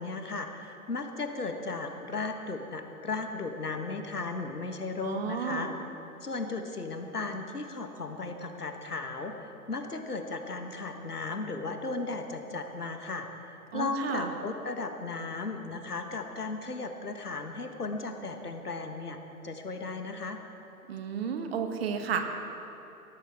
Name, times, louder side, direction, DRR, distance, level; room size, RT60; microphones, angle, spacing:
voice 1, 0.0-5.7 6.2-19.2 19.4-20.4, left 3 dB, 80° left, 6 dB, 1.5 m, -36 dB
voice 2, 5.0-5.8 13.7-14.3 20.9-22.2, right 7 dB, 40° right, 6 dB, 1.3 m, -32 dB
17.0 x 15.0 x 3.6 m, 2.9 s
figure-of-eight pair, 120°, 45 cm